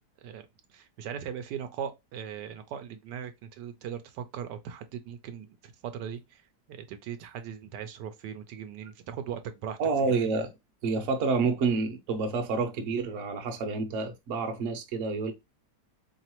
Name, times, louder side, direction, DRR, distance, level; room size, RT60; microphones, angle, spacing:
voice 1, 0.7-6.4 6.7-10.3, right 8 dB, 80° right, 1.2 m, -39 dB
voice 2, 9.8-10.5 10.8-15.3, right 4 dB, 55° right, 1.0 m, -28 dB
4.0 x 3.1 x 2.9 m
omnidirectional pair, 1.8 m